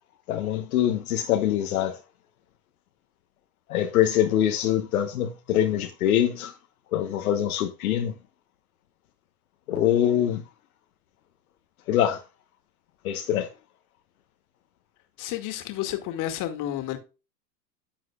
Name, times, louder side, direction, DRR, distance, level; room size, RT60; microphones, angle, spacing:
voice 1, 0.3-2.0 3.7-6.5 6.9-8.1 9.7-10.4 11.9-12.2 13.0-13.5, left 11 dB, 65° left, 1.2 m, -24 dB
voice 2, 15.2-17.0, left 13 dB, 40° left, 2.2 m, -31 dB
10.0 x 7.7 x 2.4 m
hypercardioid pair, 95°, 47 cm